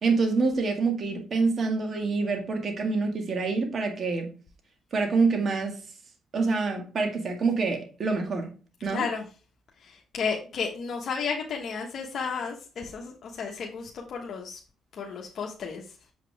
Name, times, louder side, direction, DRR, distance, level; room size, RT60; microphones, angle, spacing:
voice 1, 0.0-4.3 4.9-5.8 6.3-8.5 8.8-9.1, right 4 dB, 50° right, 1.8 m, -26 dB
voice 2, 8.9-9.2 9.8-14.6 15.0-15.8, left 5 dB, 60° left, 1.2 m, -33 dB
7.1 x 5.7 x 3.4 m
cardioid pair, 90°, 0 cm